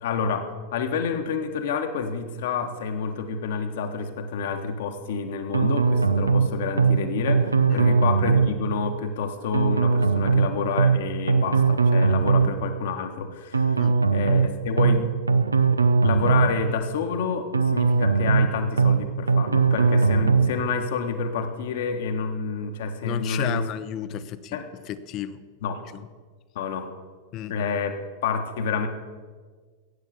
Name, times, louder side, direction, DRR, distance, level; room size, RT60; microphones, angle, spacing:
voice 1, 0.0-13.8 14.1-15.2 16.0-23.6 24.5-24.7 25.6-25.8 26.5-26.9 27.5-27.9 28.2-28.9, left 5 dB, 55° left, 6 dB, 1.3 m, -28 dB
sound 1, 5.5-6.5 6.8-7.0 7.3-8.5 9.5-10.5 10.8-11.0 11.3-12.5 13.5-14.5 14.8-15.0 15.3-16.5 17.5-18.5 18.8-19.0 19.3-20.5, right 4 dB, 80° right, 0.6 m, -20 dB
voice 2, 23.0-25.4 25.9-26.0 27.3-27.5, left 12 dB, 35° left, 14 dB, 0.7 m, -33 dB
13.0 x 8.7 x 6.8 m, 1.5 s
figure-of-eight pair, 90°, 0 cm